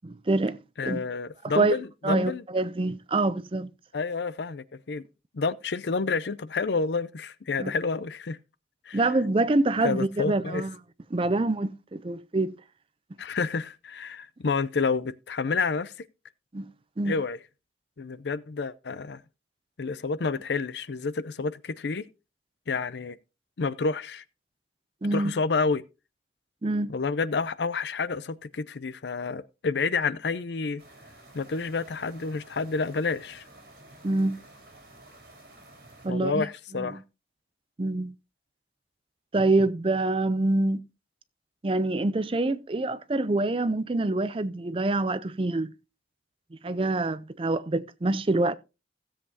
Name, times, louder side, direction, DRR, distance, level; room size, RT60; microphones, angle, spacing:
voice 1, 0.0-1.0 1.4-1.8 2.0-3.7 7.6-7.7 8.9-10.8 11.1-12.5 16.5-16.7 17.0-17.2 25.0-25.3 26.6-26.9 34.0-34.4 36.0-36.5 36.7-37.0 37.8-38.1 39.3-40.8 41.6-45.7 46.6-48.5, right 2 dB, 30° right, 0.5 m, -26 dB
voice 2, 0.8-2.4 3.9-5.0 5.3-8.4 8.9-9.1 9.8-10.6 13.2-15.9 17.1-17.4 18.0-19.2 19.8-22.0 22.7-23.2 23.6-24.2 25.1-25.8 26.9-30.8 31.3-33.4 36.1-37.0, left 4 dB, 75° left, 0.5 m, -29 dB
sound 1, 30.8-36.1, right 1 dB, 55° right, 4.5 m, -52 dB
16.5 x 7.6 x 2.7 m
head